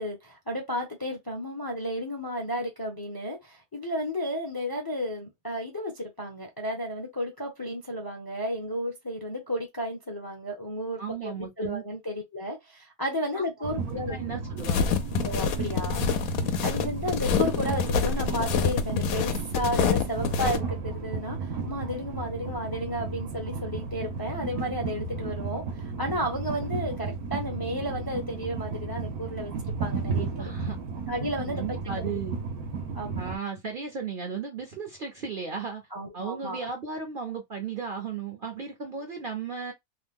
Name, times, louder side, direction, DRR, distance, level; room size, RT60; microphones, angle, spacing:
voice 1, 0.0-14.2 15.2-16.3 16.6-30.3 31.1-32.2 32.9-33.3 35.9-36.7, equal, 20° left, 0.6 m, -33 dB
voice 2, 11.0-11.8 13.3-13.4 14.1-14.9 30.0-30.8 31.5-32.4 33.2-35.8 36.1-39.7, right 5 dB, 50° right, 0.7 m, -35 dB
Train, 13.6-33.4, right 4 dB, 85° right, 1.3 m, -34 dB
sound 1, 14.6-20.6, left 6 dB, 75° left, 1.0 m, -26 dB
2.9 x 2.2 x 3.4 m
omnidirectional pair, 1.5 m